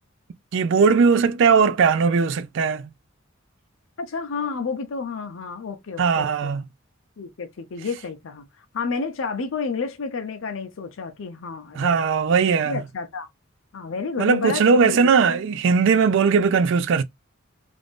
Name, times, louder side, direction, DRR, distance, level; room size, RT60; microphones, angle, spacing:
voice 1, 0.5-2.9 6.0-6.7 11.7-12.8 14.2-17.0, right 5 dB, 65° right, 0.3 m, -19 dB
voice 2, 4.0-6.5 7.2-8.5 8.7-12.0 12.7-13.3 13.7-15.1, left 5 dB, 70° left, 0.5 m, -30 dB
2.5 x 2.4 x 3.4 m
head